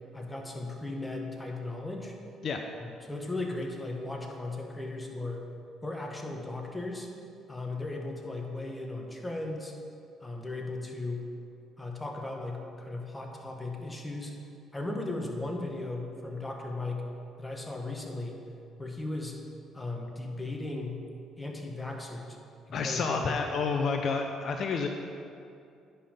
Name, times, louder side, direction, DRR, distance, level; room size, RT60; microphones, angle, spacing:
voice 1, 0.1-2.2 2.8-5.4 5.8-7.1 7.5-9.7 10.2-11.3 11.8-14.3 14.7-17.1 17.4-18.4 18.8-19.4 19.7-21.0 21.4-22.4 22.7-23.4, left 2 dB, 15° left, 1 dB, 1.5 m, -36 dB
voice 2, 22.7-24.9, left 4 dB, 60° left, 4 dB, 0.6 m, -29 dB
9.9 x 5.6 x 5.2 m, 2.5 s
supercardioid pair, 65°, 0 cm